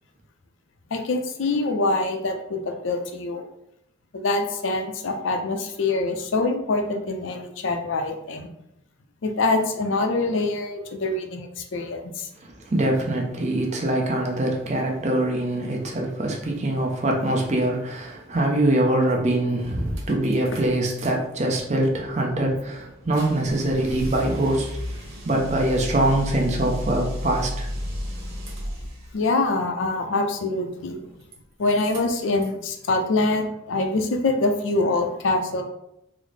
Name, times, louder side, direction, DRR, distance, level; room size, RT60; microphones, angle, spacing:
voice 1, 0.9-3.4 4.1-8.5 9.2-12.3 29.1-31.0 31.6-35.6, left 2 dB, 65° left, 4 dB, 0.5 m, -25 dB
voice 2, 12.4-24.7 25.2-27.7, right 1 dB, 35° right, 0 dB, 0.6 m, -23 dB
sound 1, 19.1-19.2 19.5-21.1 21.4-29.2 30.7-31.4 31.6-32.6, equal, 80° right, 1.0 m, -34 dB
3.8 x 2.0 x 3.2 m, 0.80 s
head